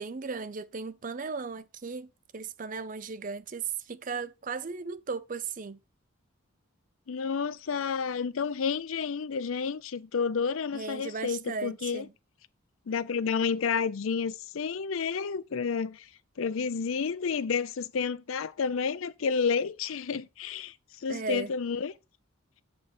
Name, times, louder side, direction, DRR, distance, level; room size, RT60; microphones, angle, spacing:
voice 1, 0.0-5.8 10.7-12.1 21.1-21.5, right 5 dB, 40° right, 0.5 m, -36 dB
voice 2, 7.1-12.0 12.9-16.1 16.4-20.7 21.0-21.9, left 5 dB, 75° left, 0.5 m, -30 dB
7.9 x 5.3 x 4.3 m
head